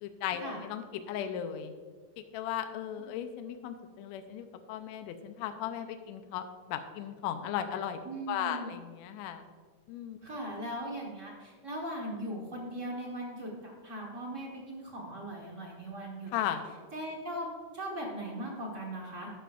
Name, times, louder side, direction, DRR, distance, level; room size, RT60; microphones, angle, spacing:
voice 1, 0.0-1.7 2.3-8.0 8.3-9.5 9.9-10.2 16.3-16.6, left 10 dB, 80° left, 8 dB, 1.8 m, -36 dB
voice 2, 8.0-8.7 10.2-16.3 16.9-17.5 17.7-19.3, right 1 dB, 50° right, -2 dB, 0.8 m, -39 dB
12.0 x 10.0 x 2.4 m, 1.5 s
omnidirectional pair, 3.4 m